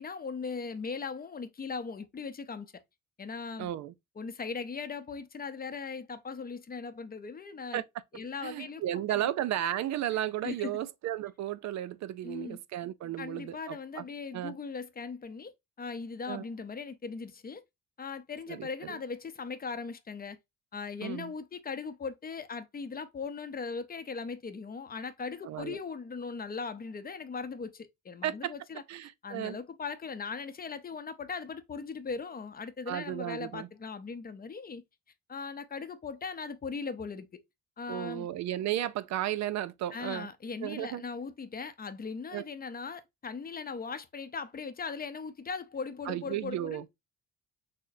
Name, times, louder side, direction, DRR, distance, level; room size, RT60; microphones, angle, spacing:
voice 1, 0.0-2.7 3.2-3.7 4.2-7.8 8.1-8.8 10.4-10.7 12.2-12.6 13.2-15.5 15.8-17.6 18.0-20.4 20.7-28.8 29.2-34.8 35.3-37.3 37.8-38.3 39.9-46.9, left 5 dB, 30° left, 0.6 m, -39 dB
voice 2, 3.6-3.9 7.7-7.8 8.4-14.0 14.3-14.6 16.3-16.4 18.5-19.0 21.0-21.3 25.4-25.8 28.2-28.5 28.9-29.6 32.9-33.7 37.9-40.3 40.6-41.0 42.3-42.5 46.0-46.9, right 12 dB, 65° right, 0.4 m, -34 dB
6.3 x 2.1 x 2.6 m
cardioid pair, 90°, 30 cm